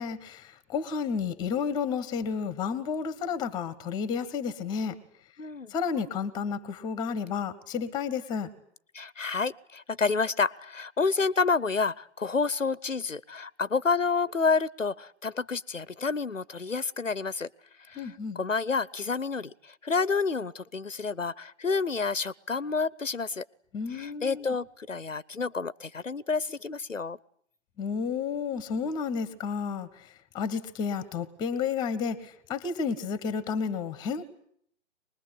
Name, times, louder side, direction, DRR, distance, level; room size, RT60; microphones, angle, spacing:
voice 1, 0.0-5.0 5.7-8.5 17.9-18.4 23.7-24.6 27.8-30.1 30.3-34.2, left 6 dB, 10° left, 16 dB, 1.5 m, -31 dB
voice 2, 5.4-5.7 8.9-17.5 17.9-23.4 23.9-27.2, left 4 dB, 85° left, 21 dB, 1.0 m, -29 dB
24.5 x 21.0 x 9.9 m, 0.66 s
figure-of-eight pair, 135°, 37 cm